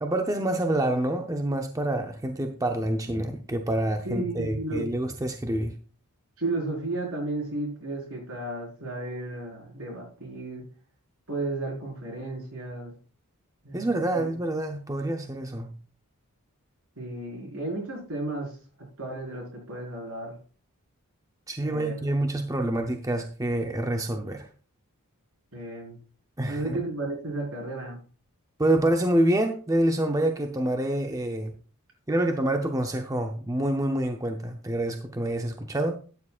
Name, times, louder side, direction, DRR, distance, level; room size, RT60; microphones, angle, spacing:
voice 1, 0.0-5.7 13.7-15.7 21.5-24.5 26.4-26.8 28.6-31.5 32.1-36.0, right 1 dB, 15° right, 5 dB, 0.7 m, -27 dB
voice 2, 4.0-4.9 6.4-10.6 11.3-12.9 13.6-14.3 17.0-18.6 19.0-20.4 21.6-22.1 25.5-26.0 26.5-28.0, right 2 dB, 70° right, 0 dB, 4.8 m, -33 dB
12.5 x 9.8 x 2.4 m, 0.38 s
head